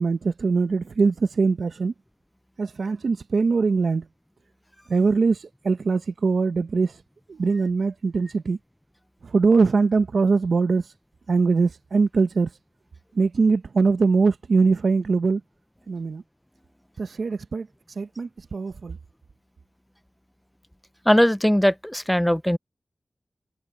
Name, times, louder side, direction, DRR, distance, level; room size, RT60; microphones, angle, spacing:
voice 1, 0.0-1.9 2.6-4.1 4.9-6.9 7.3-8.6 9.2-10.8 11.3-12.5 13.1-15.4 15.9-16.2 17.0-17.7 18.0-19.0, right 4 dB, 80° right, 0.8 m, -22 dB
voice 2, 21.1-22.6, equal, 5° left, 0.5 m, -19 dB
cardioid pair, 50°, 0 cm